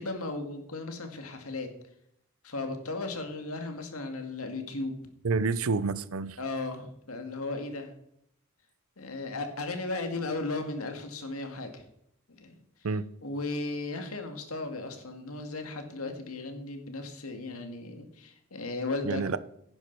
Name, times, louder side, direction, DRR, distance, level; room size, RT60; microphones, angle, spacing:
voice 1, 0.0-1.7 2.4-5.0 6.4-7.9 9.0-11.8 12.4-12.6 13.2-19.4, left 2 dB, 80° left, 2.0 m, -36 dB
voice 2, 5.2-6.4 12.8-13.0 19.0-19.4, right 4 dB, 70° right, 0.6 m, -28 dB
11.0 x 9.9 x 4.6 m
head